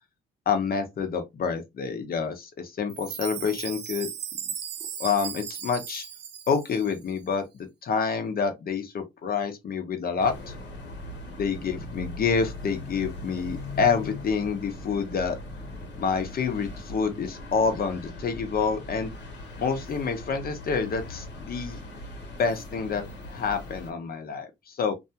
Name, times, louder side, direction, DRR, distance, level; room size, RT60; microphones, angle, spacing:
voice 1, 0.5-4.1 5.0-6.0 6.5-7.4 7.8-10.3 11.4-15.4 16.0-19.1 19.6-21.8 22.4-23.0 23.3-24.9, left 5 dB, 50° left, 0.8 m, -27 dB
Chime, 2.9-7.1, right 9 dB, 60° right, 0.5 m, -37 dB
sound 1, 10.2-23.9, left 2 dB, 65° left, 1.1 m, -40 dB
2.6 x 2.3 x 2.7 m
cardioid pair, 90°, 20 cm